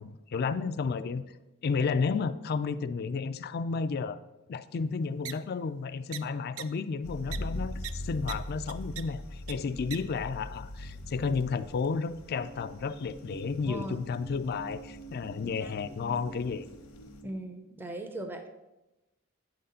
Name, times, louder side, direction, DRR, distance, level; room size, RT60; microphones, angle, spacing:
voice 1, 0.0-1.3 1.6-4.2 4.5-16.7, left 5 dB, 50° left, 13 dB, 0.4 m, -32 dB
sound 1, 5.3-5.4 6.1-6.2 6.6-6.7 7.3-7.4 7.8-7.9 8.3-8.4 8.7-9.0 9.5-9.6 9.9-10.0, right 11 dB, 85° right, 0.4 m, -37 dB
sound 2, 7.0-17.2, left 1 dB, 80° left, 1.0 m, -42 dB
sound 3, 12.3-17.3, right 3 dB, 70° right, 1.9 m, -48 dB
voice 2, 13.6-14.0 15.4-15.7 17.2-18.5, right 1 dB, 10° right, 4 dB, 0.5 m, -39 dB
8.6 x 3.9 x 5.6 m, 0.99 s
head